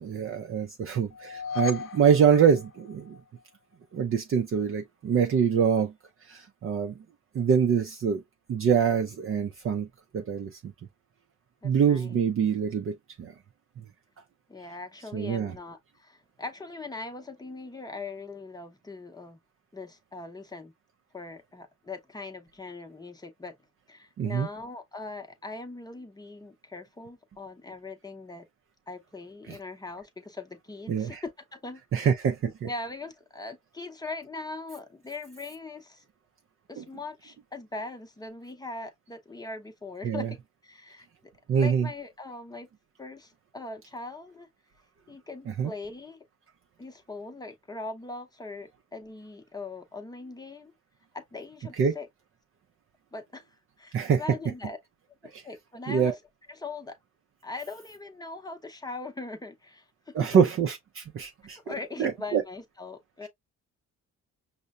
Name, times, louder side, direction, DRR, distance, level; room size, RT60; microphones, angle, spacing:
voice 1, 0.0-3.2 3.9-5.9 6.2-6.9 7.3-8.2 8.5-9.9 10.1-10.7 11.6-13.3 13.8-13.9 15.1-15.6 24.2-24.5 29.5-29.6 30.9-31.2 31.9-32.7 36.8-36.9 40.0-40.3 41.5-41.9 45.5-45.7 51.8-52.0 53.9-54.2 55.3-55.4 55.9-56.1 60.1-61.7 62.0-62.4, right 7 dB, 45° right, 0.5 m, -25 dB
sound 1, 1.1-3.4, left 5 dB, 45° left, 0.7 m, -36 dB
voice 2, 11.6-12.2 14.5-19.4 19.7-20.7 21.1-23.5 23.9-28.5 28.9-32.1 32.6-36.0 36.7-41.1 41.6-42.7 43.0-44.5 45.1-46.2 46.8-50.7 51.1-52.1 53.1-53.5 53.8-54.8 55.4-56.2 56.5-57.0 57.4-60.1 61.7-63.3, left 3 dB, 15° left, 0.7 m, -41 dB
5.4 x 2.1 x 2.4 m
cardioid pair, 90°, 30 cm